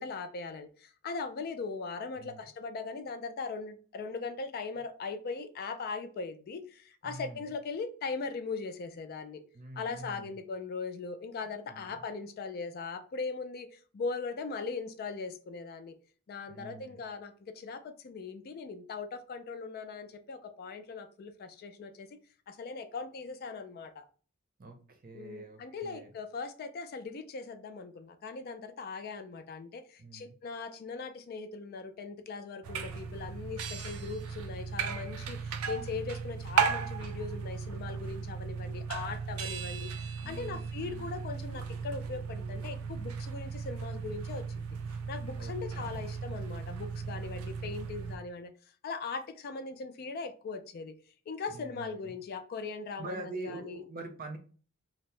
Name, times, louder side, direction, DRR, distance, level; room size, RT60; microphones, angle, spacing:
voice 1, 0.0-9.4 9.8-16.0 16.3-22.1 22.5-24.0 25.1-44.7 45.1-48.5 48.8-50.9 51.3-53.8, left 4 dB, 45° left, 0.3 m, -40 dB
voice 2, 2.2-2.5 7.0-7.5 9.5-10.4 11.4-12.0 16.5-17.0 24.6-26.1 30.0-30.4 40.2-41.2 45.3-46.0 51.5-52.2 53.0-54.4, right 3 dB, 45° right, 0.6 m, -45 dB
sound 1, 32.6-48.2, right 6 dB, 90° right, 0.5 m, -36 dB
2.7 x 2.0 x 3.1 m
head